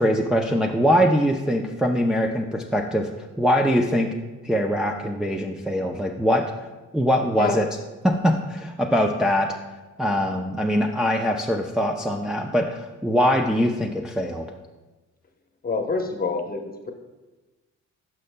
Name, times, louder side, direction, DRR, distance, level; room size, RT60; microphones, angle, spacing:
voice 1, 0.0-3.1 3.4-4.1 4.4-6.4 6.9-7.7 8.0-9.5 10.0-14.5, equal, ahead, 0 dB, 0.4 m, -22 dB
voice 2, 7.4-7.7 15.6-16.9, left 3 dB, 30° left, 4 dB, 0.9 m, -27 dB
12.0 x 5.4 x 2.2 m, 1.2 s
cardioid pair, 90°, 30 cm